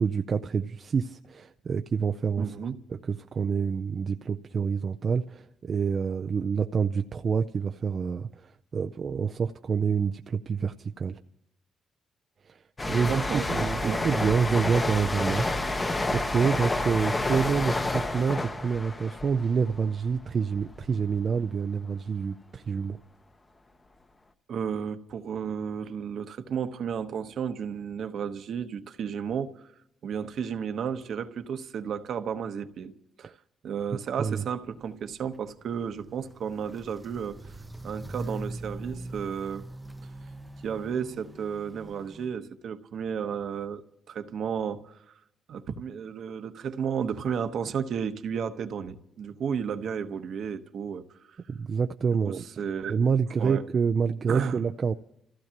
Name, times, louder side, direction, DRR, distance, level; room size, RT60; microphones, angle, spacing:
voice 1, 0.0-2.5 2.9-11.2 12.5-12.6 12.9-23.0 34.2-34.4 51.5-52.4 52.9-54.9, right 6 dB, 45° right, 0.5 m, -27 dB
voice 2, 2.4-2.8 13.1-14.3 24.5-29.7 30.0-32.9 33.2-33.3 33.6-37.4 37.8-39.7 40.6-43.8 44.1-45.0 45.5-51.4 52.2-53.0 53.4-53.6 54.3-54.6, right 7 dB, 65° right, 1.1 m, -33 dB
sound 1, 12.8-20.2 20.5-20.9, left 2 dB, 20° left, 1.0 m, -29 dB
Walk footsteps, 34.6-42.3, right 1 dB, 10° right, 0.7 m, -42 dB
30.0 x 15.5 x 2.9 m
cardioid pair, 90°, 0 cm